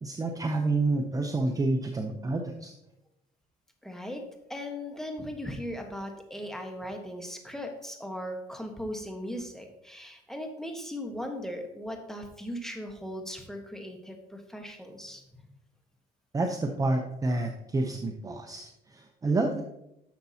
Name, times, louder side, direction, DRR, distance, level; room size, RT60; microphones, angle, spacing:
voice 1, 0.0-2.7 16.3-19.6, right 2 dB, 20° right, 4 dB, 0.7 m, -29 dB
voice 2, 3.8-4.2 4.5-15.5, equal, 5° left, 3 dB, 1.3 m, -38 dB
10.5 x 6.8 x 2.8 m, 0.85 s
cardioid pair, 110°, 17 cm